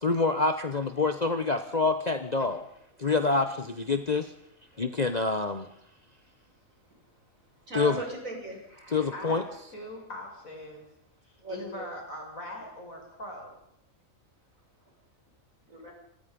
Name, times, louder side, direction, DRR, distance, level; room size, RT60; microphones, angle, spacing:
voice 1, 0.0-2.6 3.0-4.3 4.8-5.7 7.7-8.0 8.9-9.4, left 3 dB, 35° left, 8 dB, 1.2 m, -26 dB
voice 2, 4.7-5.0 6.9-7.0 7.5-9.2 11.4-11.9 15.7-15.9, right 1 dB, 75° right, 1 dB, 7.0 m, -39 dB
voice 3, 9.1-10.8 11.5-13.6, left 1 dB, 80° left, 1 dB, 7.1 m, -41 dB
26.0 x 21.5 x 5.4 m, 0.76 s
omnidirectional pair, 1.4 m